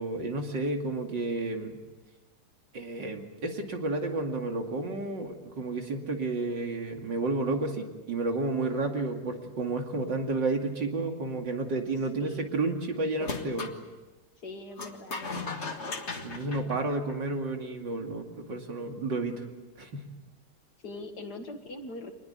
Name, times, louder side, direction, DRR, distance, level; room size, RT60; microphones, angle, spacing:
voice 1, 0.0-1.8 2.7-13.7 15.5-15.6 16.2-19.5 19.8-20.0, right 2 dB, 80° right, 3 dB, 3.2 m, -31 dB
voice 2, 12.1-12.5 14.4-15.6 20.8-22.1, left 2 dB, 60° left, 5 dB, 2.3 m, -42 dB
sound 1, 13.2-13.8 14.8-17.5, left 4 dB, 40° left, 2.0 m, -37 dB
25.5 x 20.5 x 8.2 m, 1.2 s
omnidirectional pair, 1.9 m